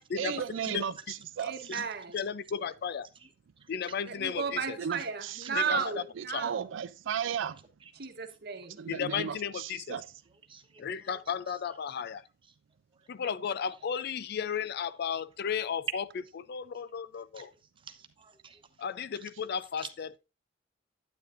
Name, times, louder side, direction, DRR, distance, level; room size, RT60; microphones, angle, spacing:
voice 1, 0.2-1.5 4.8-5.8 6.2-7.6 8.8-10.0, right 8 dB, 75° right, 0.4 m, -35 dB
voice 2, 1.4-2.2 4.0-6.7 8.0-8.8 9.2-9.3, right 6 dB, 55° right, 1.1 m, -35 dB
voice 3, 2.1-3.1 3.7-4.8 5.5-5.8 6.3-6.4 8.9-10.0 10.8-12.2 13.1-16.0 16.5-17.5 18.8-20.1, left 7 dB, 55° left, 0.4 m, -34 dB
voice 4, 10.5-11.2 11.5-11.8 17.3-17.4 17.9-18.6 19.2-19.3, right 6 dB, 25° right, 1.0 m, -49 dB
9.2 x 9.1 x 2.5 m
head